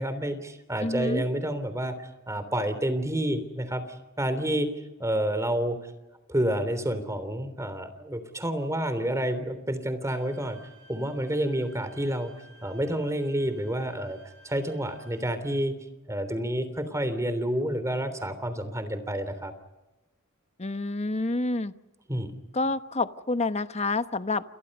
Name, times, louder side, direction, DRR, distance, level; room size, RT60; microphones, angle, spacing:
voice 1, 0.0-3.8 4.2-4.7 5.0-5.8 6.3-10.6 10.9-12.3 12.6-14.2 14.4-15.8 16.1-19.5 22.1-22.3, right 1 dB, 15° right, 11 dB, 3.2 m, -29 dB
voice 2, 0.8-1.2 20.6-21.7 22.5-24.4, left 2 dB, 30° left, 11 dB, 1.0 m, -28 dB
Bowed string instrument, 10.1-15.2, right 2 dB, 60° right, 7.1 m, -56 dB
29.5 x 29.0 x 5.4 m, 1.0 s
head